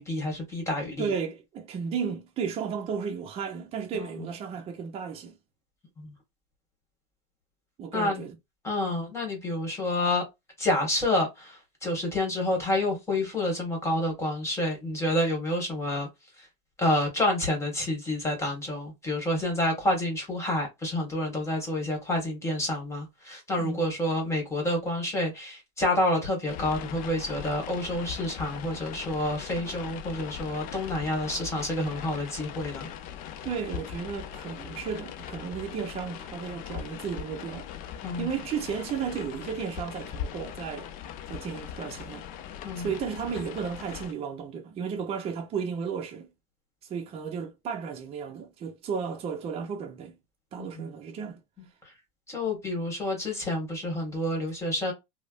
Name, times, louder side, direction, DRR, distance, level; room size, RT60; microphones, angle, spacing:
voice 1, 0.0-1.1 3.9-4.1 6.0-6.1 7.9-8.2 8.6-10.2 10.6-16.1 16.4-16.5 16.8-32.9 38.0-38.3 42.6-42.9 50.6-50.7 51.8-51.9 52.3-54.9, left 1 dB, 15° left, 1.6 m, -28 dB
voice 2, 1.0-5.4 7.8-8.4 23.6-23.9 33.4-37.7 38.2-40.9 41.3-42.3 42.8-46.3 46.8-50.1 50.5-51.4, right 6 dB, 35° right, 0.7 m, -34 dB
sound 1, 26.5-44.1, left 9 dB, 50° left, 0.5 m, -40 dB
3.2 x 2.1 x 2.5 m
supercardioid pair, 115°, 18 cm